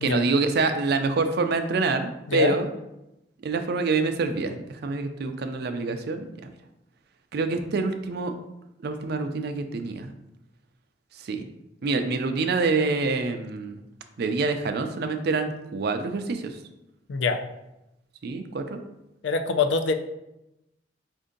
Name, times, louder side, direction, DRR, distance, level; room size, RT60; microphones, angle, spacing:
voice 1, 0.0-2.7 3.4-6.2 7.3-8.4 8.8-10.1 11.3-11.5 11.8-13.8 14.2-16.5 18.2-18.8, right 3 dB, 60° right, 7 dB, 0.4 m, -26 dB
voice 2, 19.2-19.9, left 4 dB, 75° left, 7 dB, 0.4 m, -24 dB
4.4 x 2.6 x 3.7 m, 0.91 s
head